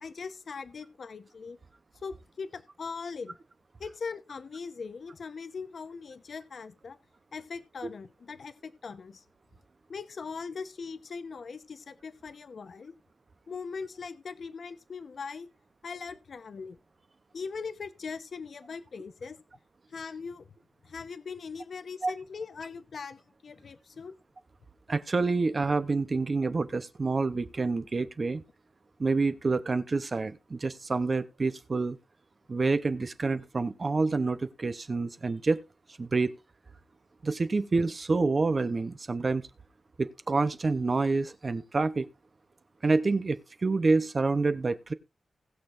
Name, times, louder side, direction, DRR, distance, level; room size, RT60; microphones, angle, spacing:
voice 1, 0.0-1.6 2.0-3.4 3.8-7.0 7.3-9.2 9.9-12.9 13.5-15.5 15.8-16.8 17.3-19.4 19.9-20.5 20.8-24.2, left 5 dB, 55° left, 0.9 m, -40 dB
voice 2, 24.9-28.4 29.0-32.0 32.5-35.6 36.0-36.3 37.2-39.5 40.0-42.1 42.8-44.9, right 3 dB, 35° right, 0.7 m, -27 dB
20.0 x 6.7 x 2.5 m
wide cardioid pair, 140°, 0 cm